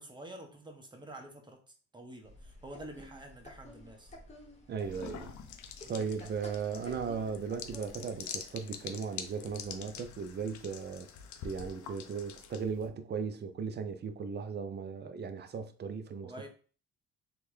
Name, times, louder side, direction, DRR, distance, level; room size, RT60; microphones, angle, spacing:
voice 1, 0.0-1.6 1.9-4.2 5.8-6.2 16.2-16.5, right 1 dB, 15° right, 0.8 m, -48 dB
sound 1, 2.2-8.2, left 1 dB, 20° left, 1.0 m, -52 dB
voice 2, 4.7-5.3 5.9-11.1 11.4-16.3, right 5 dB, 35° right, 0.5 m, -37 dB
sound 2, 4.8-12.9, left 7 dB, 70° left, 0.5 m, -46 dB
3.6 x 2.2 x 3.1 m
cardioid pair, 90°, 30 cm